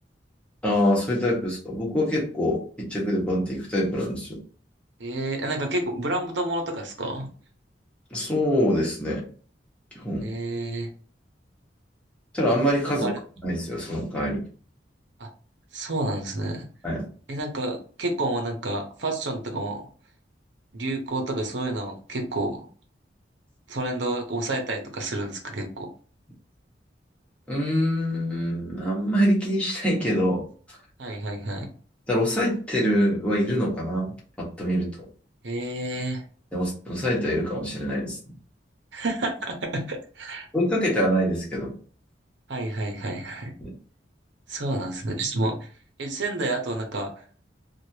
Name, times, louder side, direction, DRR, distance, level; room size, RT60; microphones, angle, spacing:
voice 1, 0.6-4.4 8.1-9.3 9.9-10.3 12.3-13.1 13.4-14.4 16.8-17.1 27.5-30.4 32.1-34.1 34.4-34.9 36.5-38.2 40.5-41.7 43.6-43.7, equal, 5° left, -6 dB, 1.2 m, -25 dB
voice 2, 5.0-7.3 10.2-10.9 12.8-13.1 15.2-15.3 15.7-16.6 17.3-19.9 20.7-22.7 23.7-25.9 31.0-31.7 35.4-36.2 38.9-40.5 42.5-43.5 44.5-45.7 46.0-47.2, right 2 dB, 80° right, 3 dB, 0.9 m, -29 dB
3.1 x 2.5 x 2.8 m, 0.41 s
head